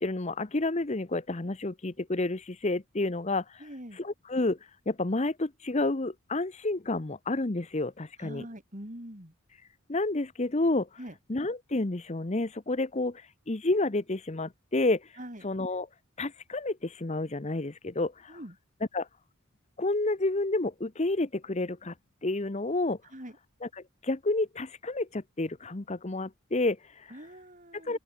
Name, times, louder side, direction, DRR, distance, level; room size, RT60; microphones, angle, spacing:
voice 1, 0.0-3.7 3.9-8.4 9.9-11.0 11.3-15.2 15.4-15.9 16.2-18.4 18.9-19.1 19.8-21.9 22.2-23.0 23.6-27.1 27.8-28.0, left 2 dB, 30° left, 0.8 m, -30 dB
voice 2, 3.6-4.0 8.2-9.3 11.0-11.2 15.2-15.5 18.3-18.6 23.1-23.4 27.1-28.0, equal, 35° right, 5.4 m, -43 dB
open air
head